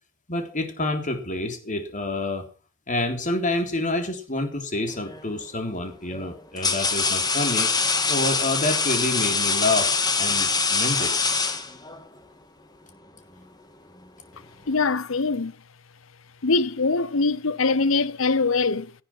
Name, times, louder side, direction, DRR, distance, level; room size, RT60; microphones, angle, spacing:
voice 1, 0.3-2.4 2.9-7.7 8.1-9.9 10.2-11.1, left 2 dB, 40° left, 3.6 m, -28 dB
sound 1, 5.0-5.3 6.1-12.1, left 4 dB, 20° left, 2.2 m, -24 dB
voice 2, 14.7-15.5 16.4-18.9, left 4 dB, 75° left, 0.9 m, -23 dB
17.5 x 9.8 x 6.0 m
head